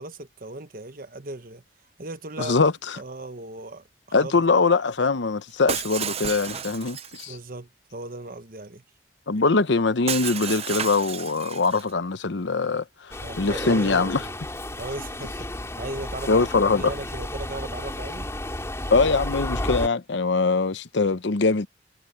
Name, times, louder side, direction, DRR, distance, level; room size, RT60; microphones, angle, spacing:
voice 1, 0.0-1.6 2.0-2.6 3.0-4.3 7.3-8.8 13.2-14.3 14.8-15.5 15.8-16.5 16.7-18.3, right 2 dB, 50° right, 1.2 m, -37 dB
voice 2, 2.4-3.0 4.1-7.4 9.3-14.2 16.3-16.9 18.9-21.7, left 4 dB, 75° left, 0.8 m, -22 dB
Shatter, 5.7-7.3 10.1-11.9, right 8 dB, 35° right, 0.7 m, -32 dB
Subway metro underground, 13.1-19.9, left 1 dB, 15° left, 3.1 m, -32 dB
head